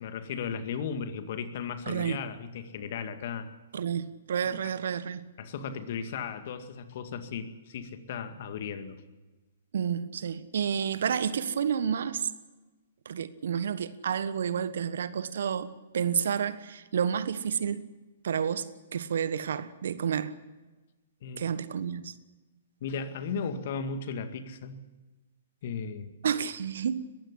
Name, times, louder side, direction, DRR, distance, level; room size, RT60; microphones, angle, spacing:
voice 1, 0.0-3.5 4.5-4.7 5.4-9.0 21.2-21.5 22.8-24.8 25.6-26.1, left 6 dB, 50° left, 2.1 m, -36 dB
voice 2, 1.9-2.2 3.7-5.3 9.7-12.3 13.0-17.8 18.2-20.3 21.4-22.1 26.2-27.1, right 7 dB, 65° right, 1.3 m, -30 dB
21.5 x 15.5 x 10.0 m
figure-of-eight pair, 120°, 0 cm